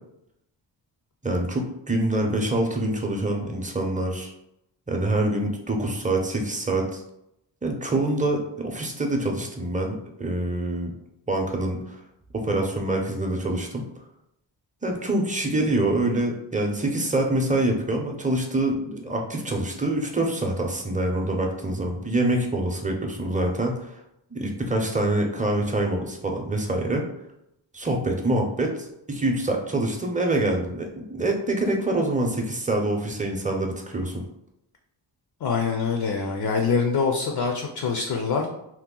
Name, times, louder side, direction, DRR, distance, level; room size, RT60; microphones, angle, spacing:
voice 1, 1.2-4.3 4.9-7.0 7.6-10.9 11.3-12.0 12.3-13.8 14.8-23.9 24.3-27.0 27.7-34.2, right 1 dB, 15° right, 2 dB, 0.6 m, -25 dB
voice 2, 35.4-38.5, left 5 dB, 55° left, 3 dB, 0.5 m, -24 dB
2.8 x 2.1 x 3.7 m, 0.81 s
wide cardioid pair, 75°, 45 cm